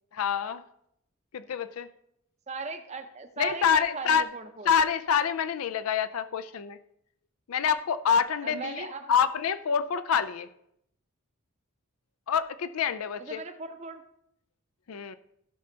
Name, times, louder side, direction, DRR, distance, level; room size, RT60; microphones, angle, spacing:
voice 1, 0.1-0.6 1.3-1.9 3.4-4.3 4.7-6.8 7.5-10.5 12.3-13.4 14.9-15.2, left 7 dB, 75° left, 13 dB, 0.4 m, -27 dB
voice 2, 2.5-4.7 8.4-9.1 13.2-14.0, right 3 dB, 30° right, 8 dB, 0.7 m, -38 dB
15.0 x 5.5 x 3.9 m, 0.75 s
head